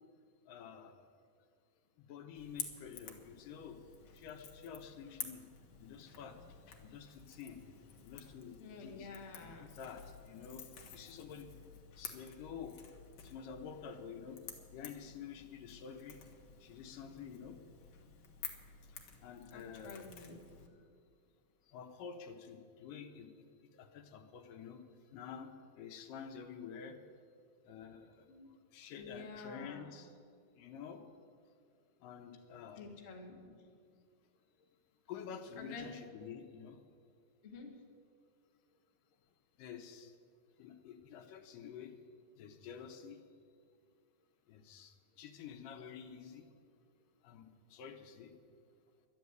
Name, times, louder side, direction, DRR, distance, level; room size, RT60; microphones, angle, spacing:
voice 1, 0.5-1.1 2.0-3.8 4.1-5.4 5.8-6.4 6.7-7.6 8.0-9.1 9.4-10.6 10.9-11.5 12.0-12.8 13.2-16.2 16.6-17.6 19.2-20.1 21.7-23.3 23.7-24.8 25.1-27.0 27.7-28.3 28.7-30.1 30.6-31.0 32.0-32.8 35.1-36.8 39.6-40.1 40.6-42.0 42.4-43.2 44.5-46.5 47.2-48.3, left 7 dB, 75° left, 5 dB, 2.4 m, -49 dB
Crackle / Crack, 2.3-20.7, left 7 dB, 55° left, 1.9 m, -51 dB
voice 2, 8.6-9.7 19.5-20.4 28.3-28.5 29.0-29.9 32.7-33.5 35.6-35.9 37.4-37.7, left 4 dB, 40° left, 0 dB, 0.9 m, -49 dB
12.0 x 9.4 x 9.5 m, 2.1 s
omnidirectional pair, 4.1 m